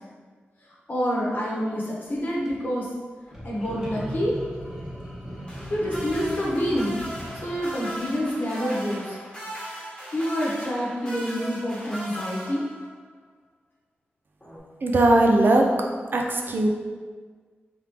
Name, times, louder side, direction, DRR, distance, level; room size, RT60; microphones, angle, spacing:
voice 1, 0.9-2.9 3.4-4.3 5.7-7.1 7.4-9.2 10.1-12.6, equal, 50° left, -4 dB, 1.0 m, -27 dB
sound 1, 2.1-2.5 3.3-8.3, equal, 10° right, 1.0 m, -38 dB
sound 2, 5.5-13.1 14.4-14.6, equal, 20° left, 1.2 m, -38 dB
voice 2, 14.8-15.6 16.1-16.7, right 2 dB, 55° right, 1 dB, 0.5 m, -19 dB
3.6 x 3.5 x 3.0 m, 1.5 s
wide cardioid pair, 105°, 4 cm